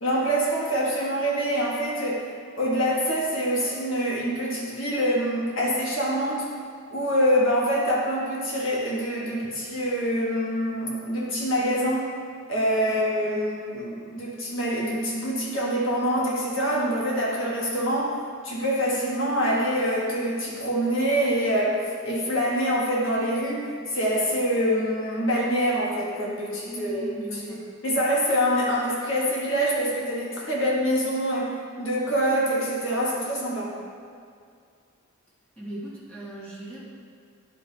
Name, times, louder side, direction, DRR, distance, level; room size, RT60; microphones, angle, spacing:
voice 1, 0.0-2.3 2.6-6.5 6.9-12.1 12.5-18.1 18.4-33.7, equal, 60° left, -5 dB, 1.5 m, -25 dB
voice 2, 26.6-27.7 35.6-36.8, right 1 dB, 5° left, -9 dB, 1.5 m, -38 dB
10.5 x 4.9 x 3.4 m, 2.2 s
head